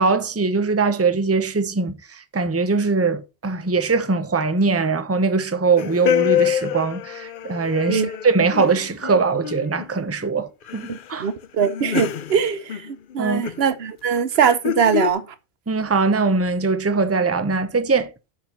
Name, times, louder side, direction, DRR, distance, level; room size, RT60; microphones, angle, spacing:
voice 1, 0.0-11.3 13.2-13.4 15.7-18.1, right 4 dB, 15° right, 0.8 m, -21 dB
sound 1, 5.8-10.0 10.2-10.3 10.7-11.0 11.4-13.1 13.4-13.7 14.4-15.1, left 12 dB, 60° left, 0.7 m, -26 dB
voice 2, 10.9-15.3, right 7 dB, 70° right, 1.1 m, -22 dB
7.4 x 5.7 x 5.9 m
omnidirectional pair, 1.1 m